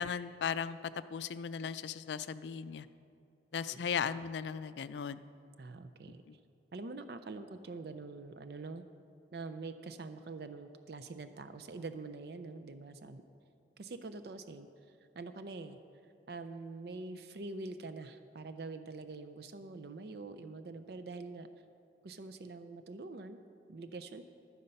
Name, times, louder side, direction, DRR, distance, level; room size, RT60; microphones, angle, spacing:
voice 1, 0.0-2.9 3.5-5.2 6.3-6.4, left 7 dB, 75° left, 14 dB, 0.4 m, -37 dB
voice 2, 5.6-6.2 6.7-8.8 9.3-13.2 13.8-15.8 16.0-21.5 22.0-23.4 23.7-24.2, right 3 dB, 60° right, 10 dB, 0.5 m, -45 dB
11.5 x 9.6 x 5.4 m, 2.6 s
head